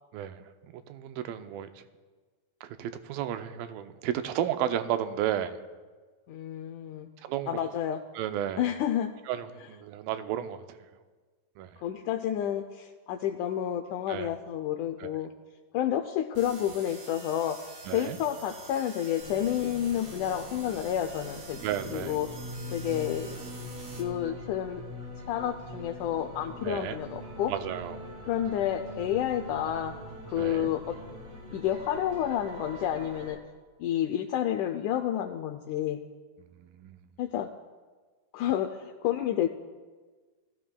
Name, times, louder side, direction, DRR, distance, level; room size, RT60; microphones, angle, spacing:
voice 1, 0.1-1.8 2.6-5.6 7.2-7.7 8.2-8.7 9.3-10.8 11.6-11.8 14.1-14.3 15.0-15.2 17.9-18.2 21.6-22.2 26.6-27.0 27.5-28.1 30.4-30.7 36.4-37.1, right 11 dB, 90° right, 9 dB, 2.4 m, -33 dB
voice 2, 6.3-7.1 7.5-8.0 8.6-9.1 11.8-15.3 15.7-17.6 17.9-21.6 21.9-22.3 22.7-23.4 23.9-24.8 25.3-27.5 28.2-30.0 30.3-31.0 31.5-33.4 33.8-36.0 37.2-37.5 38.3-39.5, left 10 dB, 85° left, 5 dB, 1.8 m, -30 dB
sound 1, 16.4-24.0, right 3 dB, 65° right, 3.5 m, -47 dB
sound 2, 19.2-33.3, equal, 50° right, 3.5 m, -43 dB
20.0 x 14.0 x 2.3 m, 1.4 s
omnidirectional pair, 4.0 m